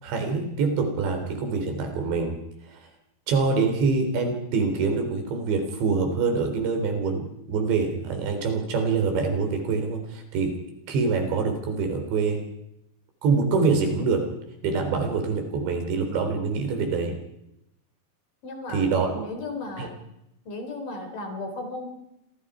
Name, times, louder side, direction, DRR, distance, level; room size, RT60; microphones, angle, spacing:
voice 1, 0.0-2.4 2.7-2.8 3.3-10.6 10.9-12.4 13.2-14.3 14.6-17.2 18.7-19.3 19.8-19.9, right 4 dB, 85° right, 5 dB, 6.0 m, -25 dB
voice 2, 18.4-20.0 20.5-21.9, left 2 dB, 50° left, 5 dB, 5.6 m, -35 dB
28.5 x 26.5 x 5.0 m, 0.85 s
omnidirectional pair, 5.0 m